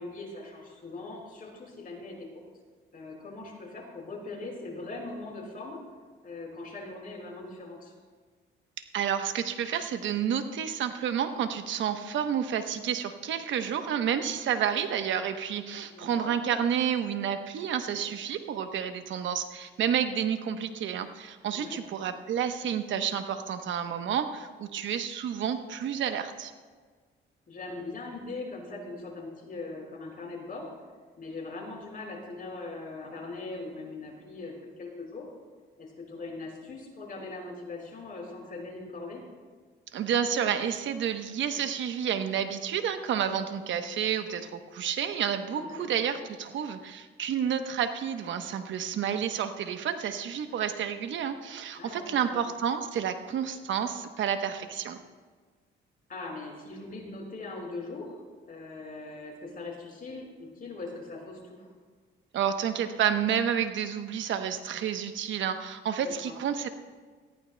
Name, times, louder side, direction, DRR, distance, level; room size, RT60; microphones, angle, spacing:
voice 1, 0.0-2.2 2.9-5.8 6.2-7.9 15.9-16.3 21.5-21.8 27.5-30.7 31.2-35.3 35.8-39.2 45.5-45.9 51.7-52.3 56.1-58.2 58.5-61.7 66.0-66.3, left 3 dB, 45° left, -1 dB, 4.5 m, -40 dB
voice 2, 8.8-26.5 39.9-55.0 62.3-66.7, right 8 dB, 75° right, 8 dB, 1.0 m, -30 dB
19.5 x 14.5 x 2.2 m, 1.5 s
cardioid pair, 90°, 20 cm